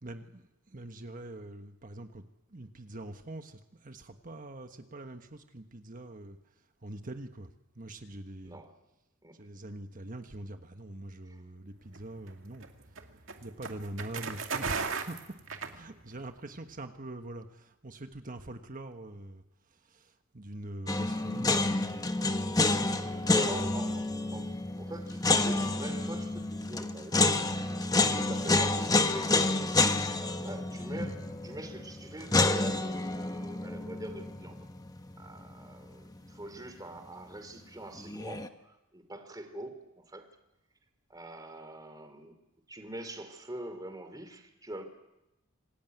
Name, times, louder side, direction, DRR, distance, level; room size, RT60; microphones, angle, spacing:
voice 1, 0.0-2.2 2.5-6.4 6.8-7.5 7.7-8.6 9.4-12.7 13.4-15.2 15.7-19.4 19.9-21.9 22.6-23.6 28.0-28.3, right 1 dB, 40° right, 7 dB, 1.4 m, -44 dB
voice 2, 8.4-8.8 9.2-9.5 11.3-11.4 22.9-27.3 27.9-29.7 30.4-34.7 35.2-40.3 41.1-42.4 42.7-44.8, right 1 dB, 20° right, 8 dB, 2.9 m, -44 dB
sound 1, 11.9-16.3, right 5 dB, 70° right, 2.3 m, -37 dB
sound 2, 20.9-35.9 36.1-36.2 38.0-38.5, left 2 dB, 20° left, 1.2 m, -29 dB
26.5 x 19.0 x 9.4 m, 0.97 s
head